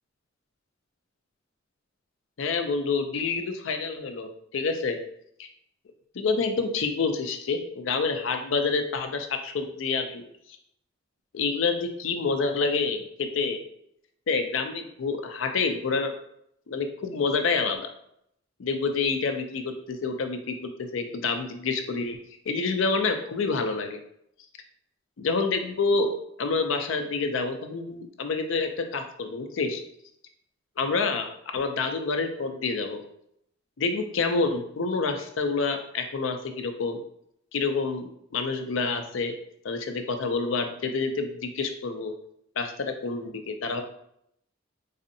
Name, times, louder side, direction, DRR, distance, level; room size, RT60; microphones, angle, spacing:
voice 1, 2.4-5.0 5.4-5.5 6.1-10.2 11.3-13.6 14.3-16.1 16.7-17.9 18.6-22.2 22.5-24.0 25.2-26.1 26.4-29.8 30.8-31.3 31.5-33.0 33.8-37.0 37.5-39.3 39.6-42.1 42.6-43.8, left 4 dB, 75° left, 6 dB, 0.5 m, -28 dB
4.0 x 2.6 x 2.7 m, 0.73 s
head